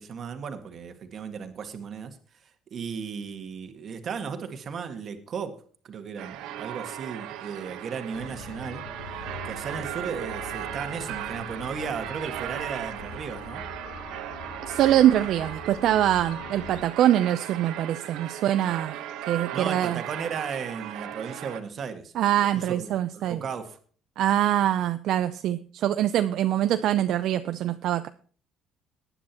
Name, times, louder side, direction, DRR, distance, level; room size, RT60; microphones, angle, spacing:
voice 1, 0.0-2.2 2.7-5.6 5.8-8.8 9.4-13.6 19.5-23.8, right 6 dB, 40° right, 7 dB, 1.8 m, -35 dB
sound 1, 6.2-21.6, right 11 dB, 80° right, 1.3 m, -37 dB
sound 2, 8.1-16.8, left 4 dB, 85° left, 6.4 m, -43 dB
voice 2, 14.6-19.0 19.3-20.0 22.2-23.4 24.2-28.1, right 12 dB, 60° right, 10 dB, 0.5 m, -24 dB
18.5 x 10.0 x 3.0 m, 0.42 s
cardioid pair, 150°, 0 cm